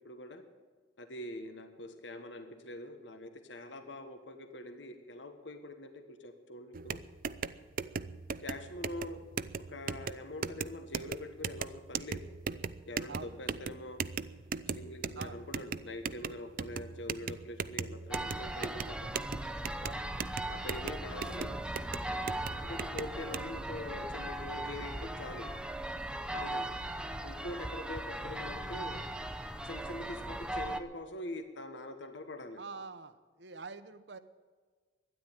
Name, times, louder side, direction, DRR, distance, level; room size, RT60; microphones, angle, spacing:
voice 1, 0.0-0.4 1.0-7.0 8.4-9.3 9.5-12.2 12.9-14.0 14.7-19.1 20.5-21.7 22.5-25.5 26.3-26.6 27.2-29.1 29.6-32.6, left 1 dB, 90° left, 7 dB, 1.4 m, -44 dB
sound 1, 6.7-23.4, right 5 dB, 50° right, 0.5 m, -39 dB
voice 2, 13.1-13.4 15.2-15.5 19.8-20.3 26.3-26.6 32.6-34.2, right 4 dB, 75° right, 12 dB, 1.0 m, -46 dB
sound 2, 18.1-30.8, right 1 dB, 5° right, 0.6 m, -38 dB
12.5 x 10.5 x 9.0 m, 1.5 s
head